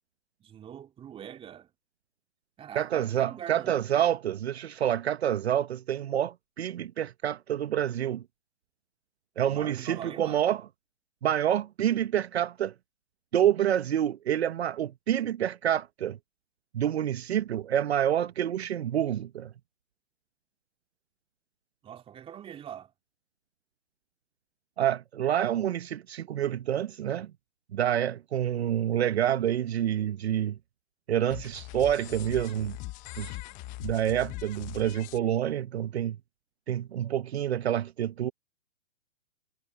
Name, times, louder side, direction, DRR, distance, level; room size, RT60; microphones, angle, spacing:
voice 1, 0.4-1.7 2.6-4.2 9.5-10.4 21.8-22.9 33.4-33.8, right 9 dB, 15° right, 2.3 m, -43 dB
voice 2, 2.7-8.2 9.4-10.6 11.2-12.7 13.3-16.2 16.7-19.5 24.8-27.3 27.7-30.6 31.1-32.8 33.1-33.4 33.8-36.2 36.7-38.3, right 10 dB, 60° right, 1.1 m, -28 dB
sound 1, 31.3-35.2, left 22 dB, 20° left, 1.0 m, -41 dB
hypercardioid pair, 130°, 37 cm